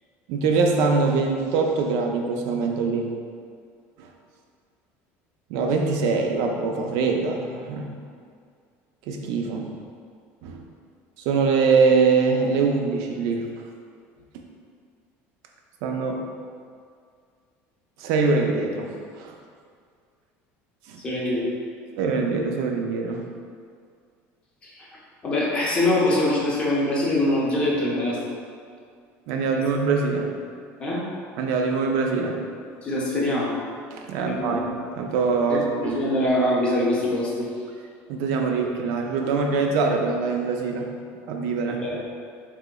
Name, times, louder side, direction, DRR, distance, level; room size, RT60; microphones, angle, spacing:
voice 1, 0.3-3.1 4.0-4.1 5.5-7.9 9.1-9.7 10.4-10.6 11.2-13.5 15.8-16.2 18.0-19.3 20.9-21.0 22.0-23.3 29.3-30.3 31.4-32.4 33.9-34.7 34.9-36.0 38.1-40.9 41.3-41.9, right 4 dB, 65° right, 2 dB, 0.3 m, -23 dB
voice 2, 21.0-21.5 24.6-24.9 25.2-28.2 30.8-31.0 32.8-33.6 34.2-34.8 35.5-37.5 41.7-42.0, left 1 dB, 20° left, -4 dB, 0.5 m, -24 dB
3.6 x 3.0 x 2.2 m, 2.2 s
cardioid pair, 165°, 6 cm